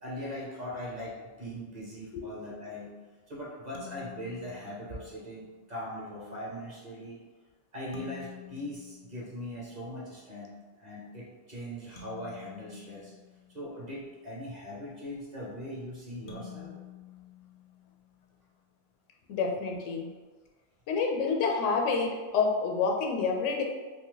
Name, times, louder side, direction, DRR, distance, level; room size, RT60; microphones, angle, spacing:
voice 1, 0.0-2.9 3.3-7.2 7.7-13.1 13.5-16.7, left 1 dB, 40° right, -6 dB, 0.9 m, -40 dB
sound 1, 3.7-5.4 7.9-9.9 12.0-14.1 16.3-18.3, left 7 dB, 60° left, 0.6 m, -50 dB
voice 2, 19.3-20.1 20.9-23.6, left 4 dB, 90° left, 1 dB, 0.9 m, -28 dB
2.7 x 2.5 x 3.8 m, 1.3 s
omnidirectional pair, 1.2 m